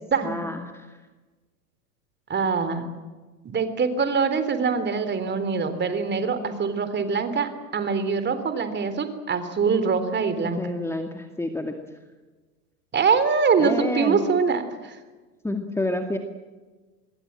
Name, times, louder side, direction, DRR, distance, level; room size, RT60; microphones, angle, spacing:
voice 1, 0.2-0.9 10.6-11.7 13.6-14.3 15.4-16.2, left 1 dB, 5° left, 5 dB, 2.2 m, -29 dB
voice 2, 2.3-2.8 3.4-10.6 12.9-15.0, right 5 dB, 25° right, 10 dB, 3.7 m, -24 dB
26.0 x 22.0 x 7.6 m, 1.3 s
hypercardioid pair, 100°, 47 cm